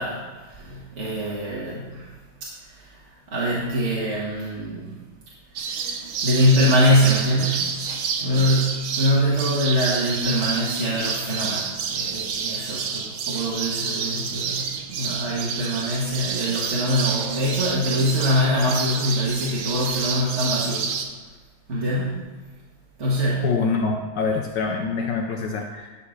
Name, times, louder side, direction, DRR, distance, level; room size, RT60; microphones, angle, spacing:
voice 1, 0.0-2.1 2.4-5.0 5.5-7.8 8.1-21.0 21.7-22.3 23.0-23.5, equal, 40° right, -6 dB, 1.7 m, -24 dB
sound 1, 5.6-21.1, right 6 dB, 80° right, 1.7 m, -29 dB
voice 2, 23.4-25.9, left 4 dB, 70° left, 2 dB, 1.3 m, -25 dB
11.5 x 4.3 x 6.4 m, 1.4 s
omnidirectional pair, 2.1 m